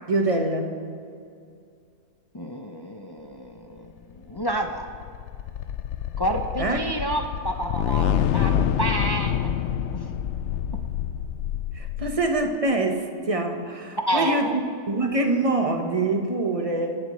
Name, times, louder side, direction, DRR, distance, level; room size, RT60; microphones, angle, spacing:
voice 1, 0.1-0.7 6.6-6.8 11.7-14.5 14.9-17.0, right 2 dB, 25° right, 4 dB, 1.1 m, -24 dB
voice 2, 2.3-3.9 4.3-4.9 6.2-9.4 9.9-10.0 14.1-14.5, right 1 dB, 30° left, 3 dB, 0.4 m, -29 dB
sound 1, 4.2-12.6, left 9 dB, 65° left, 0.7 m, -27 dB
25.0 x 11.5 x 3.2 m, 2.3 s
omnidirectional pair, 1.6 m